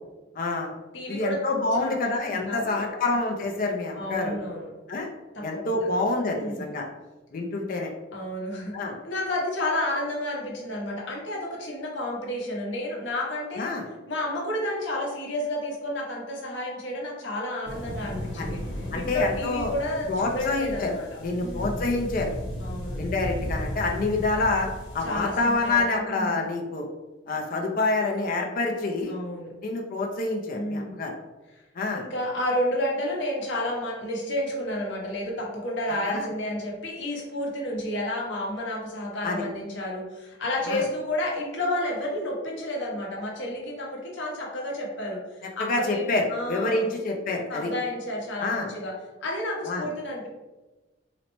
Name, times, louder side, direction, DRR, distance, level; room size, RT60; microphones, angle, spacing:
voice 1, 0.3-0.7 1.1-4.4 4.9-5.1 5.4-6.9 7.3-7.9 8.7-9.0 13.6-13.8 18.4-18.5 18.9-19.7 20.1-20.9 21.2-22.3 22.9-24.7 24.9-26.9 27.3-29.1 29.6-31.1 31.8-32.0 36.0-36.3 39.2-39.5 40.7-40.8 45.6-47.7 48.4-48.7 49.6-49.9, left 3 dB, 45° left, 2 dB, 0.4 m, -27 dB
voice 2, 0.9-1.4 1.7-1.9 2.3-2.9 3.9-4.7 5.3-5.9 6.2-6.7 8.1-8.7 9.0-13.7 14.1-18.6 18.9-21.9 22.6-23.0 25.0-26.5 29.1-29.5 30.5-31.0 31.9-46.9 47.5-50.3, left 1 dB, 70° left, -2 dB, 0.8 m, -31 dB
sound 1, 17.6-25.8, equal, 90° left, 1.1 m, -35 dB
3.9 x 2.1 x 3.0 m, 1.1 s
head